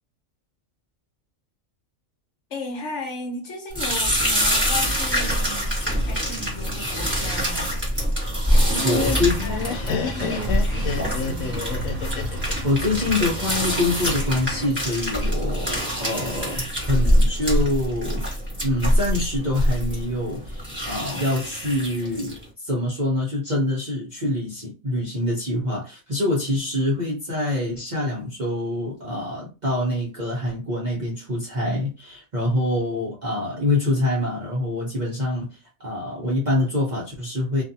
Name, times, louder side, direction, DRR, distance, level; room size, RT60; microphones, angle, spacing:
voice 1, 2.5-7.9 8.5-11.6, left 1 dB, 60° left, 1.2 m, -35 dB
sound 1, 3.7-22.4, equal, 10° right, 1.4 m, -25 dB
Truck, 8.4-14.7, equal, 70° right, 1.0 m, -35 dB
Laughter, 8.6-13.6, left 6 dB, 90° left, 1.0 m, -30 dB
voice 2, 8.8-9.4 12.6-18.2 18.6-37.6, left 1 dB, 40° right, 0.8 m, -25 dB
2.5 x 2.5 x 2.7 m
omnidirectional pair, 1.4 m